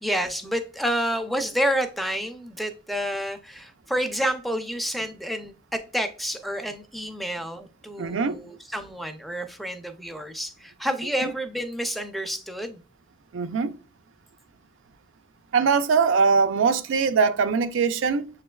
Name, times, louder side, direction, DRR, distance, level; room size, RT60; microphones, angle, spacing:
voice 1, 0.0-12.8, equal, ahead, 0.4 m, -29 dB
voice 2, 8.0-8.4 13.3-13.7 15.5-18.2, right 5 dB, 85° right, 0.4 m, -21 dB
6.9 x 3.3 x 2.2 m
head